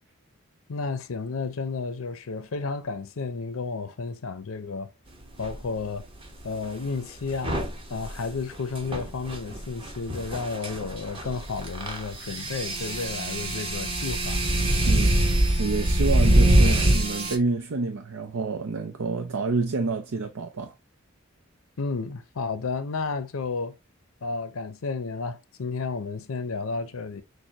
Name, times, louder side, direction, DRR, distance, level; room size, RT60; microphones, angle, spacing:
voice 1, 0.7-4.9 5.4-6.1 6.4-14.4 21.8-23.7 24.2-27.2, left 4 dB, 85° left, 0.6 m, -32 dB
sound 1, 5.4-5.6 7.3-17.4, right 1 dB, 25° right, 1.0 m, -24 dB
voice 2, 14.9-15.2 15.6-20.7, right 3 dB, 85° right, 0.6 m, -28 dB
6.5 x 2.2 x 2.8 m
head